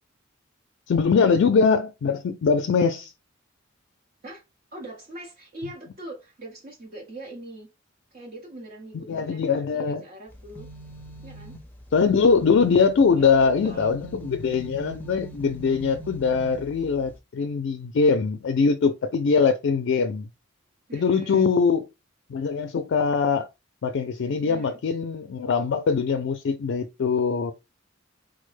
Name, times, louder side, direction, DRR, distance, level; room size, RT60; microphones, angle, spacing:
voice 1, 0.9-3.1 9.1-10.0 11.9-20.3 20.9-21.9 22.3-23.5 23.8-27.5, left 5 dB, 65° left, 0.4 m, -22 dB
voice 2, 4.7-7.7 8.1-10.7 11.2-11.6 13.1-14.1 20.9-21.5 24.2-24.8, right 1 dB, 45° right, 0.8 m, -42 dB
sound 1, 10.3-17.2, right 1 dB, 10° left, 0.5 m, -43 dB
3.8 x 2.1 x 3.2 m
head